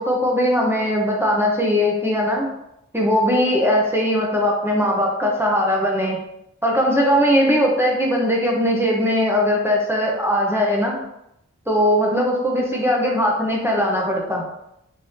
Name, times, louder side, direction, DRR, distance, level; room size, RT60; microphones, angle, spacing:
voice 1, 0.0-2.4 2.9-6.2 6.6-10.9 11.7-14.4, equal, 10° right, -2 dB, 0.7 m, -19 dB
3.6 x 2.7 x 3.1 m, 0.82 s
wide cardioid pair, 60°, 29 cm